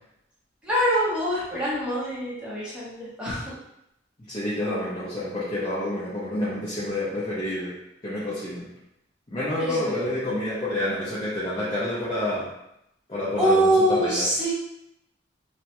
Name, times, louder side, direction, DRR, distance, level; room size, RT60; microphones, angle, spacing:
voice 1, 0.6-3.5 9.6-10.0 13.4-14.5, equal, 5° right, -9 dB, 0.7 m, -24 dB
voice 2, 4.3-7.8 8.0-8.7 9.3-12.5 13.1-14.2, left 1 dB, 30° left, -9 dB, 0.5 m, -28 dB
2.3 x 2.0 x 2.9 m, 0.81 s
head